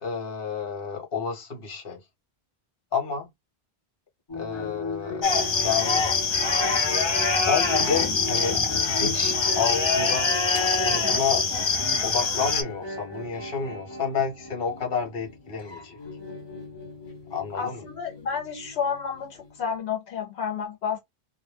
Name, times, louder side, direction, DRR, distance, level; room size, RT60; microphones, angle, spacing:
voice 1, 0.0-2.0 2.9-3.3 4.3-5.2 5.6-6.1 7.5-8.6 8.9-10.3 10.8-11.5 12.0-16.0 17.3-17.8, left 6 dB, 60° left, 1.2 m, -30 dB
sound 1, 4.3-19.8, left 3 dB, 25° left, 0.8 m, -38 dB
sound 2, 5.2-12.6, left 4 dB, 40° left, 0.4 m, -24 dB
voice 2, 17.5-21.0, left 6 dB, 80° left, 0.9 m, -30 dB
2.2 x 2.1 x 3.2 m
omnidirectional pair, 1.1 m